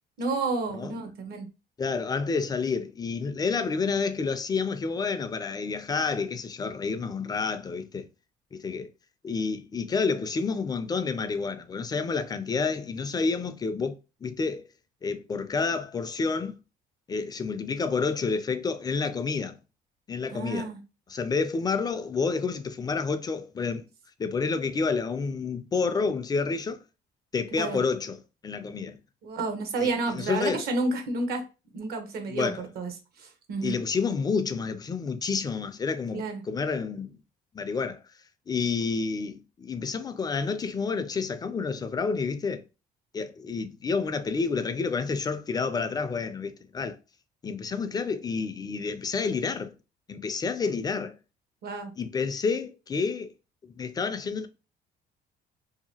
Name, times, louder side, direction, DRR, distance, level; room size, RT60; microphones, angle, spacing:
voice 1, 0.2-1.5 20.3-20.8 27.6-27.8 29.2-31.4 31.7-32.9 33.2-33.8 36.1-36.4 51.6-51.9, right 3 dB, 65° right, 0.8 m, -30 dB
voice 2, 1.8-8.0 8.5-8.9 9.2-13.9 14.2-14.6 15.0-16.6 17.1-19.6 20.1-20.7 21.1-23.8 24.2-26.8 27.3-28.2 28.4-29.0 29.8-30.7 32.3-32.7 33.6-37.2 37.5-38.0 38.5-42.6 43.1-47.0 47.4-49.7 50.1-51.1 52.0-53.3 53.8-54.5, left 4 dB, 25° left, 0.4 m, -29 dB
2.8 x 2.3 x 2.8 m
cardioid pair, 110°, 17 cm